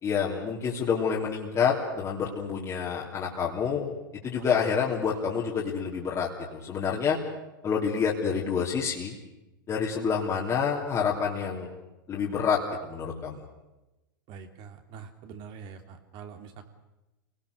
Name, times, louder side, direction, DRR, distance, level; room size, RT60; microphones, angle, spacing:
voice 1, 0.0-3.9 4.2-7.2 7.6-9.1 9.7-11.7 12.1-13.4, left 6 dB, 25° left, -3 dB, 3.2 m, -28 dB
voice 2, 4.4-4.9 14.3-16.7, right 6 dB, 45° right, 6 dB, 3.0 m, -45 dB
27.5 x 19.5 x 6.7 m, 0.99 s
hypercardioid pair, 110°, 11 cm